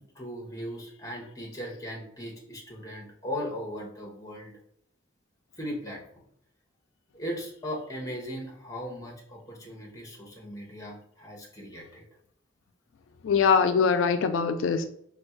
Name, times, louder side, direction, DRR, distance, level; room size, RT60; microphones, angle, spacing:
voice 1, 0.1-4.5 5.6-6.0 7.1-12.0, equal, 20° left, -1 dB, 1.1 m, -38 dB
voice 2, 13.2-14.9, left 6 dB, 90° left, 8 dB, 0.4 m, -22 dB
4.3 x 2.3 x 4.5 m, 0.71 s
head